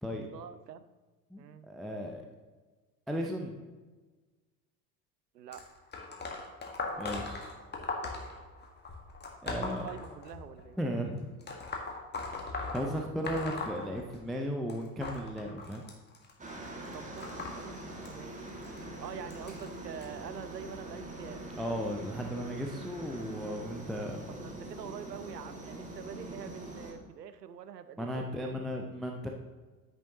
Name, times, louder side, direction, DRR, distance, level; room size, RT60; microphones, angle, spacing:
voice 1, 0.3-0.8 1.4-1.7 5.3-5.6 9.4-10.8 16.9-17.8 18.1-18.5 19.0-21.4 24.4-28.7, right 8 dB, 80° right, 12 dB, 0.7 m, -45 dB
voice 2, 1.3-2.3 3.1-3.6 7.0-7.5 9.4-9.9 10.8-11.3 12.7-15.8 21.6-24.4 28.0-29.3, equal, ahead, 1 dB, 0.3 m, -35 dB
sound 1, 5.5-10.6 11.4-14.4 14.7-20.1 20.8-21.1 22.1-22.2 23.1-23.2 23.9-24.0, left 3 dB, 20° left, 1.7 m, -40 dB
Aircraft, 16.4-26.9, right 1 dB, 15° right, 1.9 m, -43 dB
10.0 x 8.4 x 2.9 m, 1.3 s
figure-of-eight pair, 75°, 48 cm